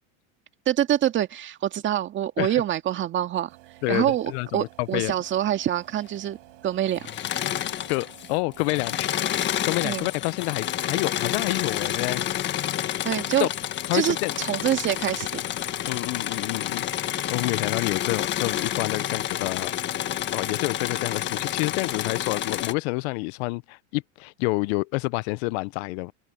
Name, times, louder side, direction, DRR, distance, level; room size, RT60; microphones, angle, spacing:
voice 1, 0.7-3.5 3.9-6.4 6.6-7.1 9.8-10.1 13.0-13.5 13.9-15.4, right 11 dB, 30° right, 2.1 m, -25 dB
sound 1, 3.5-9.8, right 20 dB, 80° right, 7.1 m, -52 dB
voice 2, 3.8-5.1 7.9-9.1 9.5-12.2 13.4-13.5 13.9-14.3 15.9-19.7 20.3-26.1, left 25 dB, 65° left, 0.7 m, -28 dB
Engine / Mechanisms, 7.0-8.3 8.6-22.7, left 11 dB, 30° left, 1.5 m, -29 dB
open air
supercardioid pair, 145°, 36 cm